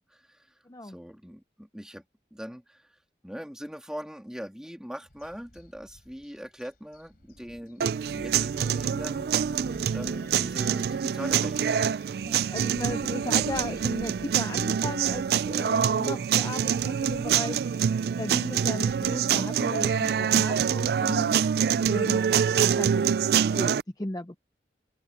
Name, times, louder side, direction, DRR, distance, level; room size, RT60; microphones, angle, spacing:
voice 1, 0.0-0.5 0.8-2.0 2.3-2.9 3.2-9.3 9.9-11.6, equal, 5° right, 2.3 m, -41 dB
voice 2, 0.7-1.0 12.2-22.2 22.7-23.0 23.5-24.4, left 1 dB, 20° left, 0.6 m, -36 dB
sound 1, 5.1-20.3, left 1 dB, 55° left, 3.9 m, -54 dB
sound 2, 7.4-12.8, right 1 dB, 40° right, 2.7 m, -45 dB
sound 3, 7.8-23.8, right 8 dB, 60° right, 0.3 m, -25 dB
open air
head